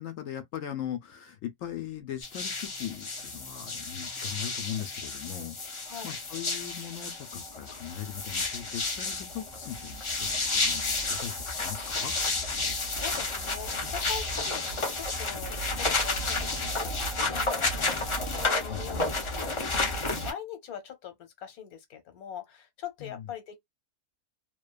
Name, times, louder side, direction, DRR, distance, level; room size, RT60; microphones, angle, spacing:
voice 1, 0.0-12.2 18.6-18.8 23.0-23.3, left 10 dB, 70° left, 0.9 m, -39 dB
sound 1, 2.2-20.3, left 3 dB, 50° left, 0.3 m, -31 dB
voice 2, 5.8-6.2 12.8-23.6, left 8 dB, 85° left, 1.3 m, -42 dB
2.7 x 2.2 x 2.3 m
omnidirectional pair, 1.5 m